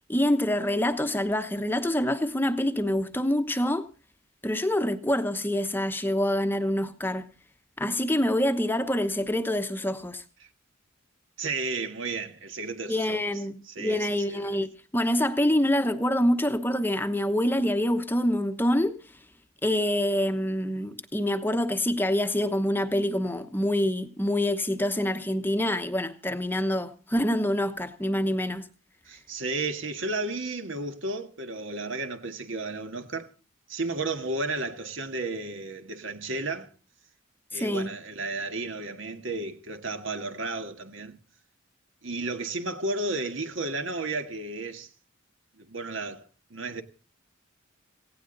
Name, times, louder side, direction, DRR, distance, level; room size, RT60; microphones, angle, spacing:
voice 1, 0.1-3.9 4.4-7.3 7.8-10.2 12.9-19.0 19.6-28.7 37.5-37.9, left 1 dB, 10° left, 1.0 m, -26 dB
voice 2, 11.4-13.2 13.7-14.6 29.1-33.3 33.7-36.7 37.5-41.2 42.0-44.9 45.6-46.8, right 3 dB, 65° right, 1.7 m, -33 dB
18.0 x 16.5 x 4.0 m
head